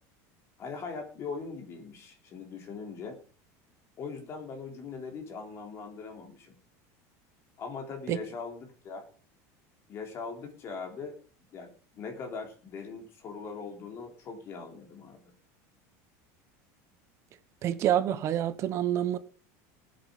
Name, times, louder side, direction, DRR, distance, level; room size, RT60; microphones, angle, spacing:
voice 1, 0.6-3.2 4.0-6.6 7.6-9.1 9.9-11.2 11.5-15.2, left 5 dB, 30° left, 3.6 m, -40 dB
voice 2, 17.6-19.2, right 11 dB, 35° right, 1.1 m, -27 dB
19.5 x 8.0 x 5.2 m
cardioid pair, 160°, 8 cm